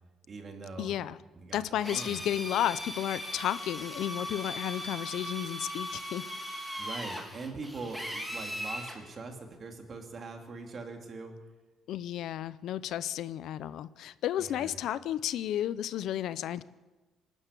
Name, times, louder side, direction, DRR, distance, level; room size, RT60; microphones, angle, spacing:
voice 1, 0.3-1.6 1.9-2.2 6.8-11.3 14.4-14.8, right 3 dB, 30° right, 4 dB, 2.8 m, -42 dB
voice 2, 0.8-1.2 1.5-6.2 11.9-16.6, left 11 dB, 60° left, 16 dB, 0.6 m, -32 dB
Drill, 1.8-9.0, equal, ahead, 2.5 m, -39 dB
26.5 x 12.0 x 8.3 m, 1.2 s
cardioid pair, 180°, 0 cm